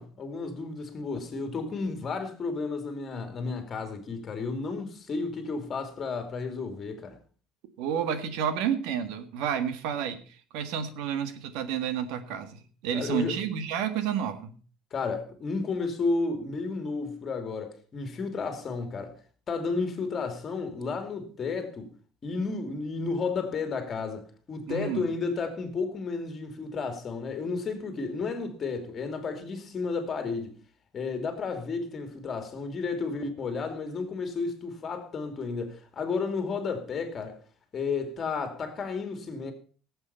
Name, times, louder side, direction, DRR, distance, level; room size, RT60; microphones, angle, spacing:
voice 1, 0.0-7.2 12.9-13.3 14.9-19.1 19.5-21.9 22.2-30.5 30.9-37.4 37.7-39.5, left 4 dB, 30° left, 2.5 m, -32 dB
voice 2, 7.8-14.6 24.7-25.1, right 8 dB, 80° right, 1.7 m, -30 dB
17.5 x 7.9 x 5.5 m
cardioid pair, 160°, 0 cm